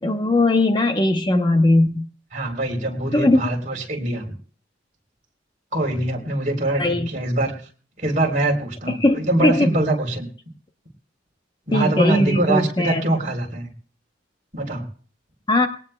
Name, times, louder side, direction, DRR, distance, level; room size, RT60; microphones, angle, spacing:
voice 1, 0.0-2.1 3.1-3.4 6.8-7.1 9.0-9.7 11.7-13.0 15.5-15.7, left 1 dB, 25° left, 6 dB, 0.9 m, -19 dB
voice 2, 2.3-4.2 5.7-7.5 8.0-10.3 11.7-13.7 14.5-14.8, right 1 dB, 40° right, 1 dB, 3.6 m, -23 dB
21.5 x 18.0 x 2.3 m, 0.43 s
head